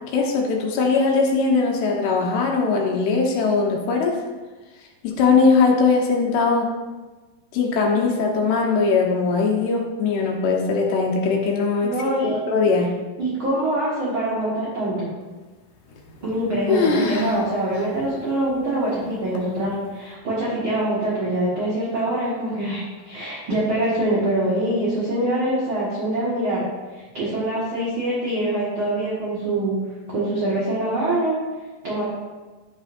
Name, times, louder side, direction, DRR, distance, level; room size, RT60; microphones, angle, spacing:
voice 1, 0.1-4.2 5.0-6.7 7.5-11.9 12.2-12.9, left 4 dB, 90° left, -1 dB, 3.3 m, -20 dB
voice 2, 11.8-12.4 13.2-15.1 16.2-26.6 27.1-29.8 30.1-31.4 31.8-32.0, right 1 dB, 40° right, -7 dB, 2.1 m, -24 dB
sound 1, 15.9-16.4 16.7-17.4 17.7-17.8 18.5-18.6 19.3-19.7, left 4 dB, 65° left, 2.1 m, -23 dB
11.0 x 8.5 x 2.7 m, 1.3 s
omnidirectional pair, 4.4 m